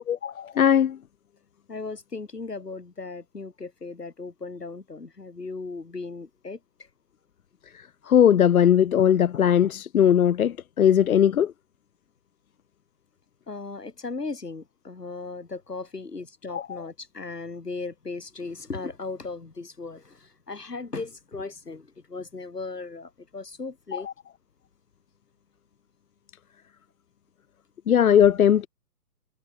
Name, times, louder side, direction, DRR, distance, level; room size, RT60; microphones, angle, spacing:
voice 1, 0.2-1.0 8.1-11.5 16.5-16.6 23.9-24.0 27.9-28.7, left 9 dB, 65° left, 0.7 m, -19 dB
voice 2, 1.7-6.6 13.5-20.2 20.5-24.1, left 3 dB, 80° left, 7.7 m, -37 dB
figure-of-eight pair, 130°, 47 cm